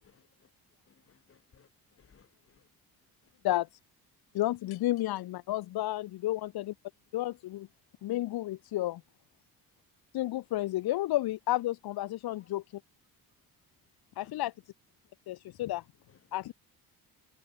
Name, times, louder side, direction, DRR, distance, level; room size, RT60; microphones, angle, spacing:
voice 1, 0.0-0.5 0.9-1.7 2.0-2.7 3.2-3.3 12.4-12.5 14.2-14.3 16.1-16.2, left 6 dB, 35° left, 7.9 m, -64 dB
voice 2, 4.3-6.7 7.1-7.7 8.0-9.0 10.1-12.6 14.2-14.5 15.3-15.8 16.3-16.5, left 15 dB, 75° left, 1.3 m, -31 dB
cardioid pair, 140°, 37 cm